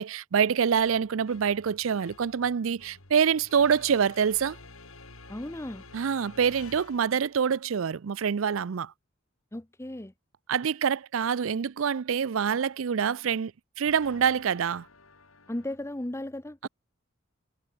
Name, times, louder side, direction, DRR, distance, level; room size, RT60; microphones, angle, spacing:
voice 1, 0.0-4.6 5.9-8.9 10.5-13.5 13.8-14.9 16.6-16.7, right 7 dB, 70° right, 0.5 m, -26 dB
sound 1, 0.8-7.4 13.9-15.8, left 3 dB, 90° left, 4.4 m, -51 dB
voice 2, 5.3-5.8 9.5-10.1 15.5-16.7, left 1 dB, 15° left, 0.8 m, -35 dB
head